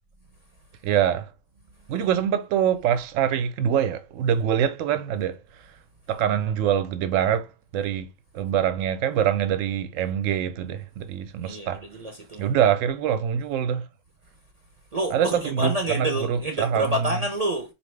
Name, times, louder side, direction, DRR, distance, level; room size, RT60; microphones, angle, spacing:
voice 1, 0.8-1.3 1.9-5.8 6.1-8.1 8.3-11.8 12.4-13.9 15.1-17.1, right 9 dB, 90° right, 0.9 m, -24 dB
voice 2, 11.4-12.5 14.9-17.7, right 1 dB, 40° right, 0.6 m, -28 dB
4.2 x 2.9 x 3.1 m
omnidirectional pair, 1.3 m